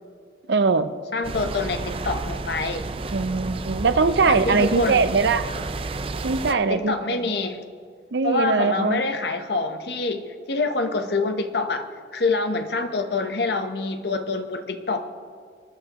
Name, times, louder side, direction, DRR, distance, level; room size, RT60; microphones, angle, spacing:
voice 1, 0.5-0.9 3.1-5.5 6.2-7.3 8.1-9.1, right 4 dB, 75° right, 12 dB, 0.6 m, -21 dB
voice 2, 1.1-2.9 4.3-5.0 6.5-7.6 8.2-11.9 12.1-15.0, left 3 dB, 70° left, 7 dB, 0.9 m, -26 dB
sound 1, 1.2-6.5, right 3 dB, 30° right, 0.4 m, -31 dB
20.0 x 12.0 x 3.0 m, 2.1 s
head